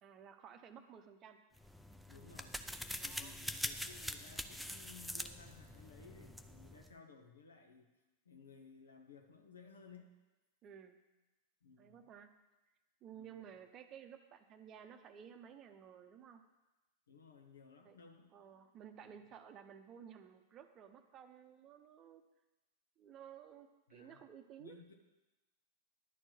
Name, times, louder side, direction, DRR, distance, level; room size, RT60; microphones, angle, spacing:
voice 1, 0.0-1.4 3.0-3.4 10.6-11.0 11.8-12.3 13.0-16.4 17.8-18.0 18.3-22.2 23.0-24.8, right 8 dB, 30° right, 8 dB, 0.8 m, -55 dB
sound 1, 1.6-6.9, left 1 dB, ahead, 0.5 m, -44 dB
voice 2, 2.1-2.7 3.0-7.9 8.2-10.1 11.6-12.1 13.1-13.5 17.1-18.3 19.0-19.2 23.9-24.2 24.6-24.9, left 5 dB, 70° left, 4 dB, 1.1 m, -58 dB
10.5 x 4.5 x 7.8 m, 1.1 s
figure-of-eight pair, 90°, 0 cm